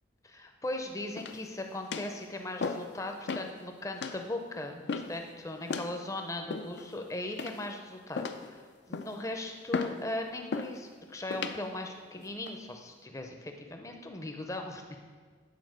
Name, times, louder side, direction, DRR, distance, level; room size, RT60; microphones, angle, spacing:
voice 1, 0.2-15.0, left 1 dB, 15° left, 4 dB, 0.6 m, -38 dB
sound 1, 1.2-1.5 1.9-2.2 2.6-2.9 3.3-3.5 4.0-4.2 4.9-5.2 5.7-5.9 6.5-6.9 7.4-7.8 8.2-8.5 8.9-9.2 9.7-10.0 10.5-10.8 11.3-11.6 12.2-12.5, left 4 dB, 65° left, 0.4 m, -35 dB
8.5 x 4.2 x 6.3 m, 1.5 s
head